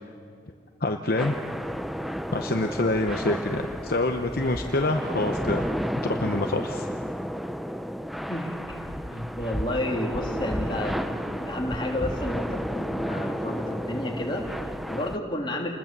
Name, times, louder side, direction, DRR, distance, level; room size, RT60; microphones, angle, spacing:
voice 1, 0.8-1.4 2.3-5.7 6.0-6.9, left 2 dB, 50° left, 5 dB, 0.9 m, -26 dB
sound 1, 1.2-15.2, equal, ahead, 0.5 m, -32 dB
voice 2, 8.3-15.7, left 1 dB, 25° left, 0 dB, 2.9 m, -31 dB
28.5 x 20.5 x 7.5 m, 2.5 s
head